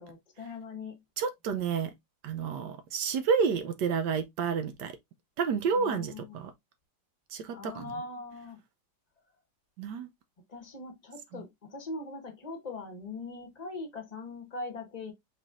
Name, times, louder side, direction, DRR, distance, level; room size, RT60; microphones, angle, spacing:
voice 1, 0.0-1.0 5.7-6.4 7.5-8.6 10.5-15.1, left 3 dB, 25° left, 0.9 m, -41 dB
voice 2, 1.2-1.9 2.2-4.9 5.4-6.5 7.3-7.9 9.8-10.1 11.3-11.4, right 6 dB, 70° right, 1.2 m, -30 dB
5.0 x 4.3 x 2.4 m
omnidirectional pair, 2.0 m